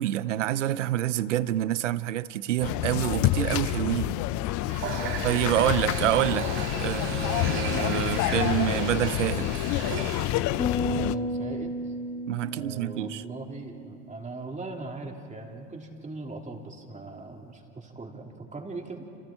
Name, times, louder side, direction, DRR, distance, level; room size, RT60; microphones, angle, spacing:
voice 1, 0.0-4.1 5.2-6.5 6.8-9.5 12.3-13.2, right 13 dB, 90° right, 0.6 m, -27 dB
sound 1, 2.6-11.2, left 15 dB, 55° left, 0.6 m, -28 dB
Water tap faucet, 4.6-10.4, right 6 dB, 65° right, 4.2 m, -36 dB
voice 2, 4.9-5.3 10.9-11.9 12.4-19.1, right 3 dB, 20° right, 3.3 m, -40 dB
sound 2, 10.6-14.0, left 1 dB, 25° left, 3.5 m, -33 dB
30.0 x 27.5 x 4.4 m
hypercardioid pair, 70°, 36 cm